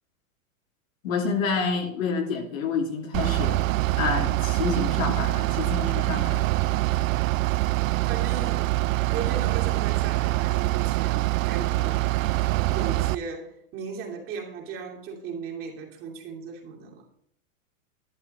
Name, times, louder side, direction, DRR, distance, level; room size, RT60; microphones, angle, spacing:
voice 1, 1.0-3.6 4.0-6.5, left 5 dB, 75° left, 2.9 m, -28 dB
Bus / Idling, 3.1-13.1, right 18 dB, 75° right, 0.5 m, -24 dB
voice 2, 8.1-12.2 12.7-17.0, right 5 dB, 30° right, 2.8 m, -37 dB
11.5 x 10.5 x 4.2 m
supercardioid pair, 145°, 41 cm